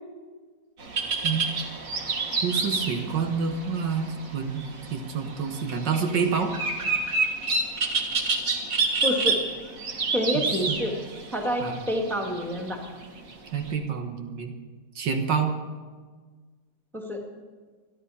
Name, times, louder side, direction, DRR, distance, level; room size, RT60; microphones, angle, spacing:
sound 1, 0.8-13.7, right 3 dB, 50° right, 1.8 m, -29 dB
voice 1, 2.4-4.0 4.3-4.6 4.9-6.5 10.3-10.8 11.6-11.8 13.5-14.5 15.0-15.5, right 6 dB, 75° right, 4 dB, 1.9 m, -27 dB
voice 2, 9.0-9.4 10.1-10.9 11.3-12.8 16.9-17.2, equal, ahead, 1 dB, 1.6 m, -28 dB
26.5 x 10.5 x 4.2 m, 1.5 s
omnidirectional pair, 2.0 m